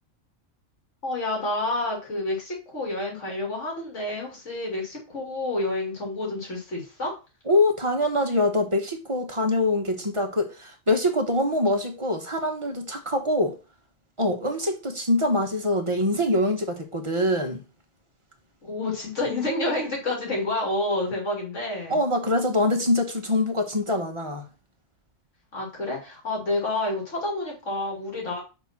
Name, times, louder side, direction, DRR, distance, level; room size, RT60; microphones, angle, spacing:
voice 1, 1.0-7.1 18.6-22.0 25.5-28.4, left 2 dB, 90° left, 2.9 m, -29 dB
voice 2, 7.5-13.6 14.2-17.6 21.9-24.5, left 1 dB, 25° right, 1.1 m, -24 dB
5.8 x 3.7 x 5.8 m
omnidirectional pair, 1.2 m